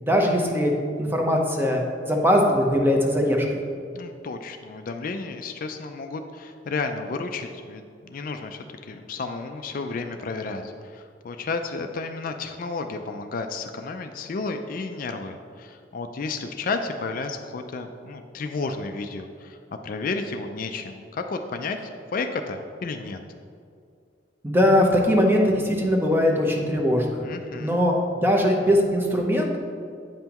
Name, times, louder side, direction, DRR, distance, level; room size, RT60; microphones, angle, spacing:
voice 1, 0.0-0.7 1.0-1.8 2.1-3.5 24.4-27.2 27.6-29.6, equal, 10° right, 1 dB, 0.8 m, -21 dB
voice 2, 3.9-19.6 19.8-21.8 22.1-23.2 27.2-27.8, left 4 dB, 50° left, 6 dB, 0.4 m, -32 dB
8.8 x 5.5 x 3.0 m, 2.3 s
head